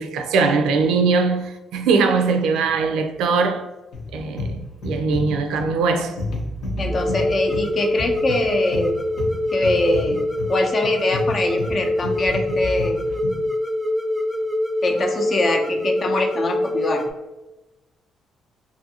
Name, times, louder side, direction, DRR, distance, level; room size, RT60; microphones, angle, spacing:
voice 1, 0.0-3.7 4.1-6.2, right 4 dB, 90° right, 0.3 m, -21 dB
sound 1, 3.9-13.5, left 2 dB, 75° left, 0.8 m, -31 dB
voice 2, 6.8-9.0 9.5-10.2 10.5-13.0 14.8-17.1, left 2 dB, 45° left, 0.5 m, -23 dB
sound 2, 6.9-17.1, left 1 dB, 10° right, 0.4 m, -24 dB
2.6 x 2.4 x 2.7 m
cardioid pair, 90°, 0 cm